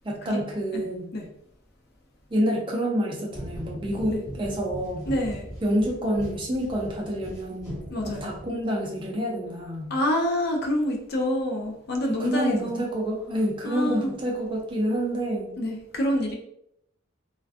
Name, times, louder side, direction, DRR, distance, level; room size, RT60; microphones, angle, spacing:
voice 1, 0.0-1.1 2.3-5.1 5.6-9.9 12.1-15.6, equal, 25° right, -1 dB, 0.4 m, -28 dB
sound 1, 3.3-8.8, equal, 15° left, 0.8 m, -40 dB
voice 2, 5.1-5.5 7.9-8.4 9.9-12.8 13.6-14.1 15.6-16.3, left 1 dB, 50° left, 2 dB, 0.4 m, -27 dB
2.3 x 2.2 x 2.4 m, 0.75 s
head